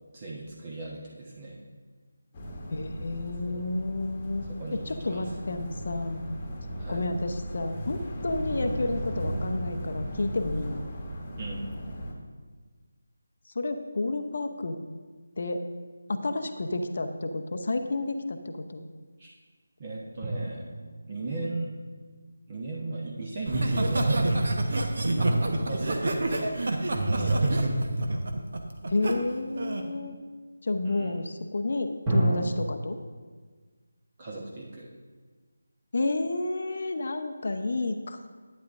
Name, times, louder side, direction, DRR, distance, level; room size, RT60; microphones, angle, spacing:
voice 1, 0.1-1.6 3.4-3.6 4.4-4.8 5.1-5.2 6.8-7.1 11.4-11.7 19.2-19.3 19.8-20.6 21.1-21.7 22.5-24.4 25.6-26.5 27.1-27.7 30.8-31.1 34.2-34.9, right 2 dB, 30° right, -3 dB, 1.1 m, -36 dB
sound 1, 2.3-12.1, equal, 25° left, 1.2 m, -36 dB
voice 2, 2.7-4.4 4.7-6.2 6.9-10.8 13.5-14.8 15.4-15.6 16.1-18.9 28.9-30.2 30.6-33.0 35.9-38.3, left 2 dB, 50° left, 7 dB, 0.7 m, -30 dB
sound 2, 20.2-22.2 25.2-28.4 32.0-32.5, right 1 dB, 15° right, 1.7 m, -31 dB
Laughter, 23.5-29.1 29.6-29.9, right 2 dB, 55° right, 1.0 m, -27 dB
11.5 x 9.3 x 2.6 m, 1.5 s
figure-of-eight pair, 160°, 0 cm